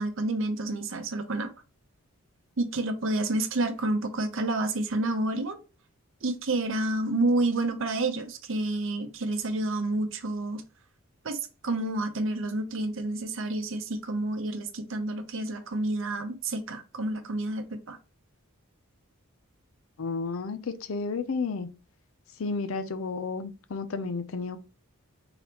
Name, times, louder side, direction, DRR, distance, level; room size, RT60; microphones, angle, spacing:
voice 1, 0.0-1.5 2.6-5.6 6.2-10.6 11.2-18.0, right 2 dB, 60° right, 0.7 m, -29 dB
voice 2, 20.0-21.7 22.4-24.6, left 4 dB, 70° left, 0.5 m, -32 dB
3.9 x 3.4 x 2.9 m
head